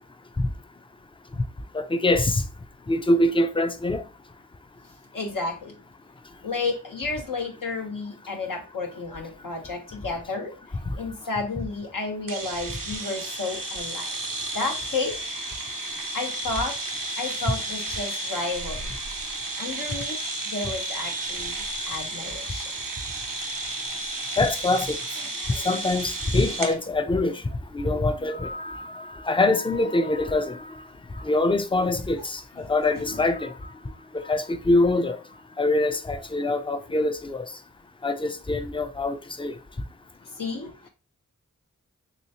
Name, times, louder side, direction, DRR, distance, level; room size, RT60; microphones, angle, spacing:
voice 1, 1.7-2.4 2.9-4.0 10.9-11.0 11.6-11.7 24.4-25.0 25.6-27.4 27.7-30.7 31.2-33.5 34.1-35.2 35.6-37.5 38.0-39.5, left 2 dB, 15° left, 0.4 m, -24 dB
voice 2, 5.1-5.7 6.4-10.5 11.0-14.2 14.5-15.2 16.1-16.7 17.2-18.8 19.6-20.2 20.5-22.7 25.4-25.7 27.8-27.9 28.2-28.3 33.9-34.0 40.2-40.9, left 3 dB, 80° left, 1.0 m, -32 dB
sound 1, 12.3-26.8, right 2 dB, 80° right, 0.7 m, -32 dB
3.2 x 2.9 x 2.7 m
cardioid pair, 45°, 32 cm